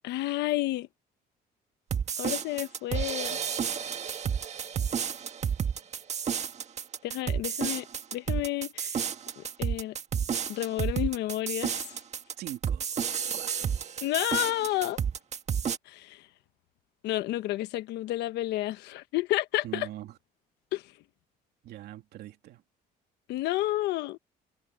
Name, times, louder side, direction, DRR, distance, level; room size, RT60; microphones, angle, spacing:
voice 1, 0.0-0.9 2.2-3.4 7.0-7.9 8.1-9.0 9.4-9.9 10.5-11.9 14.0-15.0 15.9-16.2 17.0-19.9 20.7-20.8 23.3-24.2, left 16 dB, 85° left, 1.2 m, -30 dB
sound 1, 1.9-15.8, right 7 dB, 40° right, 1.7 m, -31 dB
voice 2, 12.4-12.9 13.3-13.9 19.6-20.1 21.6-22.6, right 13 dB, 75° right, 2.5 m, -42 dB
cardioid pair, 110°, 17 cm